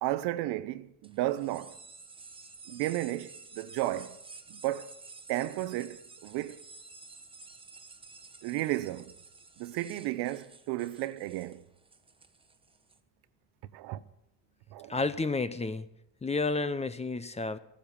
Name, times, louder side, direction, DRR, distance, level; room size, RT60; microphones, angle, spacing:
voice 1, 0.0-1.8 2.7-4.2 4.5-4.9 5.3-6.6 8.4-9.1 9.6-11.6 13.7-14.0 14.7-14.9, right 15 dB, 85° right, 0.8 m, -33 dB
sound 1, 1.0-13.0, right 4 dB, 15° right, 1.1 m, -51 dB
voice 2, 14.9-15.9 16.2-17.6, left 3 dB, 15° left, 0.7 m, -31 dB
14.5 x 10.0 x 7.1 m
cardioid pair, 100°, 38 cm